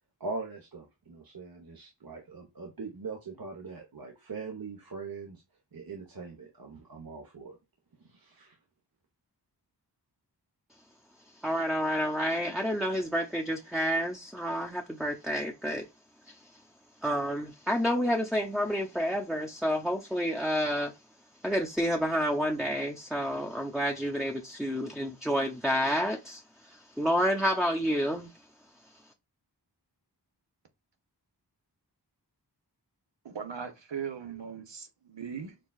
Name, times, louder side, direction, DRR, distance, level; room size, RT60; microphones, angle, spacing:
voice 1, 0.2-5.4 5.7-7.6 8.0-8.6, right 4 dB, 55° right, 1.0 m, -41 dB
voice 2, 11.4-15.8 17.0-20.9 21.4-26.4 26.7-28.3, equal, ahead, 0.7 m, -29 dB
voice 3, 33.2-35.6, right 7 dB, 85° right, 0.9 m, -39 dB
6.4 x 2.4 x 2.3 m
wide cardioid pair, 45°, 42 cm